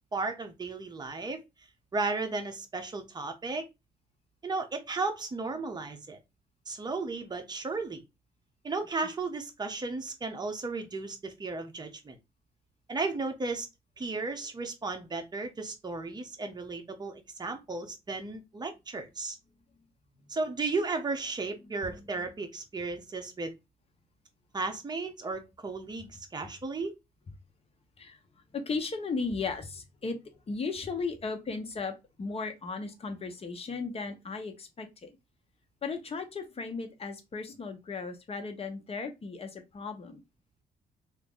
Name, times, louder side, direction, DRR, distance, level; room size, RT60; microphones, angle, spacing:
voice 1, 0.1-1.4 1.9-3.6 4.4-6.2 6.7-8.0 8.6-12.2 12.9-13.7 14.0-19.4 20.3-23.5 24.5-26.9, right 3 dB, 25° right, 0.9 m, -34 dB
voice 2, 21.6-22.3 28.0-28.2 28.5-30.2 30.5-35.2 35.8-40.2, left 4 dB, 40° left, 0.9 m, -36 dB
3.0 x 2.6 x 3.7 m
cardioid pair, 105°, 16 cm